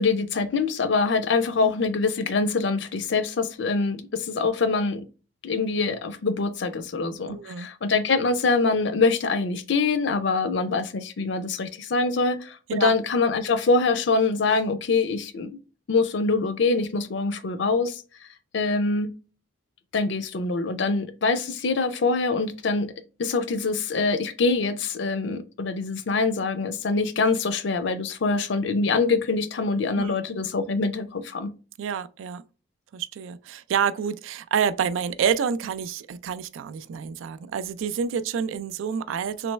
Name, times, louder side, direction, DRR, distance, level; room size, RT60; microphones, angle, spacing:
voice 1, 0.0-5.0 5.4-15.5 15.9-18.0 18.5-19.1 19.9-22.9 23.2-31.5, left 4 dB, 65° left, 0.5 m, -24 dB
voice 2, 7.3-7.7 12.7-12.9 30.0-30.1 31.8-32.4 32.9-39.5, right 7 dB, 85° right, 0.3 m, -28 dB
3.3 x 3.0 x 3.1 m
head